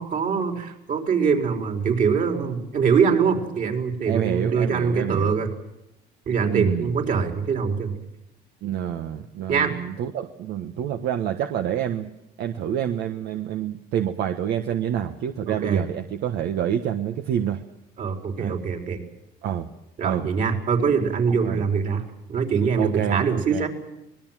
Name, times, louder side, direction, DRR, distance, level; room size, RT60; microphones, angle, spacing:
voice 1, 0.0-5.5 6.3-7.9 9.5-9.7 15.5-15.8 18.0-19.0 20.0-22.0 22.3-23.7, right 6 dB, 50° right, 4 dB, 4.7 m, -23 dB
voice 2, 4.0-5.3 6.4-6.9 8.6-12.1 12.4-17.6 18.4-18.6 19.4-19.7 20.0-20.3 21.3-21.6 22.8-23.7, right 10 dB, 75° right, 7 dB, 1.4 m, -27 dB
25.0 x 20.5 x 7.6 m, 0.86 s
cardioid pair, 110°, 17 cm